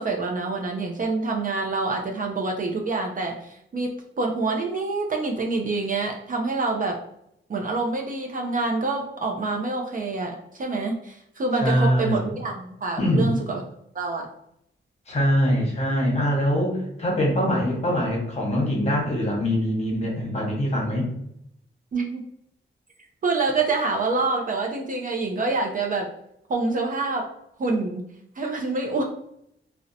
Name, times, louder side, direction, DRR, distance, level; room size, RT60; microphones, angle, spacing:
voice 1, 0.0-3.9 4.2-7.0 7.5-13.6 13.9-14.3 21.9-22.2 23.2-26.1 26.5-27.3 27.6-28.1 28.4-29.0, right 3 dB, 40° right, 1 dB, 0.4 m, -26 dB
voice 2, 11.6-12.4 13.0-13.3 15.1-21.1, equal, 30° left, -2 dB, 0.9 m, -23 dB
2.6 x 2.0 x 2.6 m, 0.75 s
wide cardioid pair, 115°, 21 cm